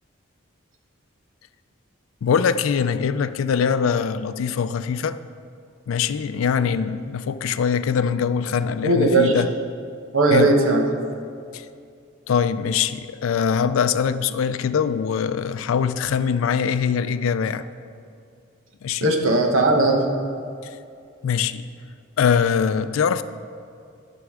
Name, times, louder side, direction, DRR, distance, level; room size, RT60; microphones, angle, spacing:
voice 1, 2.2-5.2 5.9-9.5 10.3-10.5 11.5-11.7 12.3-17.6 18.8-19.1 21.2-21.7 22.2-23.2, left 7 dB, 90° left, 0.4 m, -22 dB
voice 2, 8.8-9.4 10.1-10.9 19.0-20.0, right 2 dB, 90° right, 1.0 m, -18 dB
12.5 x 6.0 x 3.6 m
head